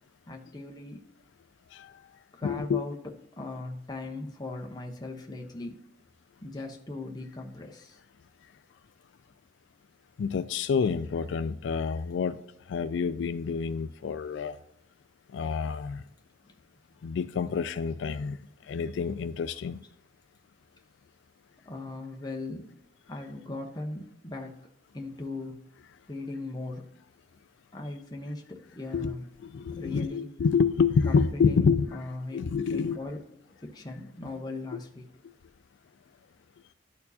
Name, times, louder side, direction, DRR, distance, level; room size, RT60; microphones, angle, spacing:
voice 1, 0.3-1.1 2.3-5.8 6.4-8.0 10.8-10.9 16.5-16.6 21.7-22.7 23.1-24.6 24.9-25.6 26.1-26.8 27.7-29.3 29.8-30.5 31.0-32.4 32.7-33.2 33.6-35.0, left 2 dB, 20° left, 0.9 m, -39 dB
voice 2, 2.4-2.8 10.2-12.4 12.7-14.6 15.3-16.0 17.0-18.4 18.7-19.8 28.9-29.1 29.4-31.9 32.3-33.0, left 5 dB, 80° left, 0.3 m, -27 dB
12.0 x 4.4 x 2.8 m
head